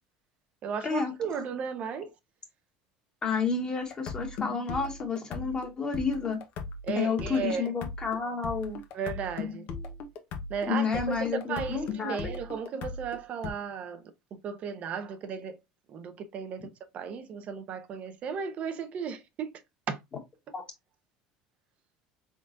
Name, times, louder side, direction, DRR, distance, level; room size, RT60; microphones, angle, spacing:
voice 1, 0.6-2.1 6.8-7.7 8.9-9.7 10.5-15.6 15.9-19.5 19.9-20.0, right 6 dB, 50° right, 0.7 m, -35 dB
voice 2, 3.2-6.4 6.9-8.8 10.7-12.4 20.5-20.6, left 5 dB, 30° left, 1.6 m, -30 dB
sound 1, 3.9-13.5, left 4 dB, 60° left, 1.0 m, -38 dB
3.8 x 3.8 x 2.5 m
supercardioid pair, 100°, 3 cm